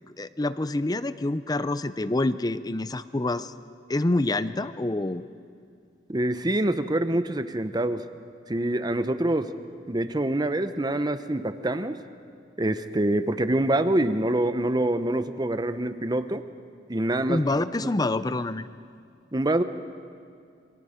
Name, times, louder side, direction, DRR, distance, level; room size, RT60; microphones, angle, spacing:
voice 1, 0.2-3.5 3.9-5.2 17.3-18.7, left 2 dB, 20° left, 14 dB, 0.6 m, -26 dB
voice 2, 6.1-8.1 8.5-9.5 9.9-12.0 12.6-16.4 16.9-17.4 17.8-17.9 19.3-19.6, right 1 dB, 25° right, 11 dB, 0.8 m, -25 dB
28.0 x 25.0 x 5.1 m, 2.4 s
head